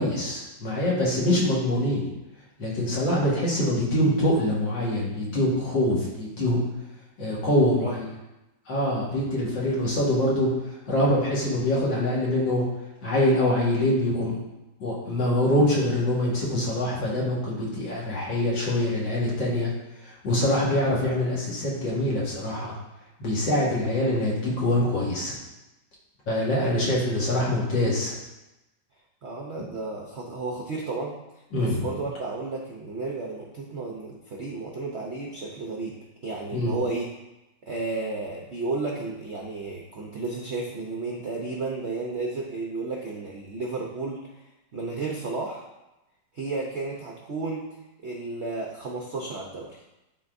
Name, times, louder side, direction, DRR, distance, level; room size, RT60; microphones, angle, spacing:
voice 1, 0.0-2.1 2.6-6.6 7.2-8.1 8.7-10.5 10.9-12.7 13.0-14.4 14.8-19.7 20.0-22.7 23.2-25.3 26.3-28.2 31.5-31.9 36.5-36.7, left 1 dB, 75° left, -5 dB, 2.3 m, -24 dB
voice 2, 29.2-31.2 31.6-35.9 36.2-37.1 37.7-44.4 44.7-45.7 46.3-47.8 48.0-49.8, right 3 dB, 65° right, -1 dB, 0.6 m, -33 dB
11.5 x 3.9 x 2.6 m, 0.96 s
omnidirectional pair, 2.1 m